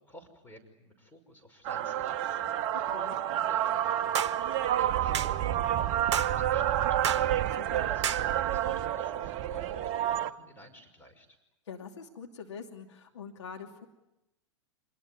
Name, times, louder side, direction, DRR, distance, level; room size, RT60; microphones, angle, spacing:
voice 1, 0.0-7.3 7.9-11.4, equal, 10° left, 4 dB, 5.8 m, -54 dB
sound 1, 1.6-10.3, right 11 dB, 35° right, 0.9 m, -29 dB
sound 2, 4.2-4.4 5.1-5.3 6.1-6.3 7.0-7.3 8.0-8.3, right 8 dB, 65° right, 1.0 m, -30 dB
voice 2, 7.6-8.0 11.7-13.9, left 6 dB, 65° left, 2 dB, 2.8 m, -44 dB
27.5 x 20.5 x 9.7 m, 0.92 s
figure-of-eight pair, 105°, 16 cm